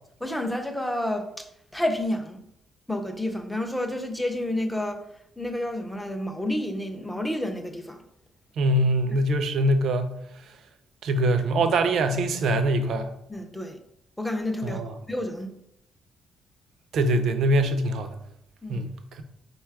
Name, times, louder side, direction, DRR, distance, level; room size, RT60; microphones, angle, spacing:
voice 1, 0.2-2.4 2.9-5.0 5.4-8.0 13.3-13.8 14.2-14.8 15.1-15.5 18.6-18.9, left 1 dB, 5° left, 5 dB, 0.4 m, -30 dB
voice 2, 8.6-10.2 11.0-13.1 14.6-14.9 16.9-18.2 18.7-19.2, right 1 dB, 60° right, 8 dB, 0.4 m, -23 dB
4.1 x 2.2 x 4.5 m, 0.77 s
cardioid pair, 175°, 0 cm